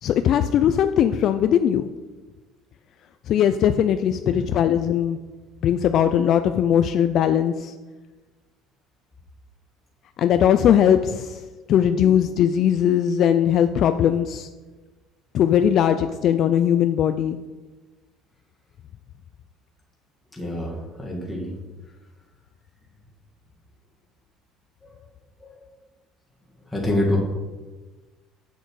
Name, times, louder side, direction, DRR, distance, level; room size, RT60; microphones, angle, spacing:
voice 1, 0.0-1.9 3.3-5.2 5.6-7.7 10.2-11.4 11.7-14.5 15.3-17.4, left 9 dB, 40° left, 9 dB, 0.3 m, -19 dB
voice 2, 20.3-21.5 24.8-25.0 25.4-25.6 26.7-27.2, left 1 dB, 5° left, -3 dB, 1.9 m, -27 dB
8.1 x 6.6 x 4.7 m, 1.2 s
cardioid pair, 165°, 0 cm